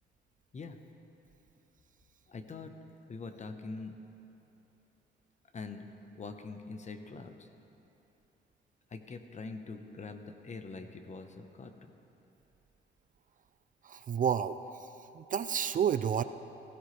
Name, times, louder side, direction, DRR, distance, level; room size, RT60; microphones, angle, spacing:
voice 1, 2.3-2.7 3.1-3.9 5.5-5.9 6.1-7.5 8.9-11.9, left 4 dB, 35° left, 7 dB, 1.0 m, -44 dB
voice 2, 13.8-14.9 15.1-16.2, right 8 dB, 40° right, 12 dB, 0.4 m, -30 dB
16.0 x 15.5 x 3.3 m, 2.9 s
cardioid pair, 90°, 20 cm